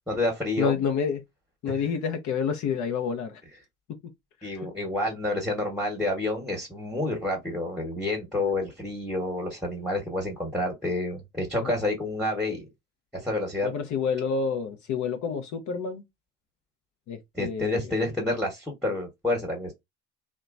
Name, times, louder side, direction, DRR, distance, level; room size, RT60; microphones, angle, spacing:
voice 1, 0.1-0.7 1.7-1.8 4.4-12.7 13.1-13.7 17.3-19.7, left 2 dB, ahead, 1.1 m, -29 dB
voice 2, 0.6-1.2 1.6-3.4 4.4-4.5 11.6-11.7 13.6-16.0 17.1-17.9, left 6 dB, 55° left, 0.7 m, -28 dB
2.9 x 2.2 x 2.4 m
hypercardioid pair, 65°, 36 cm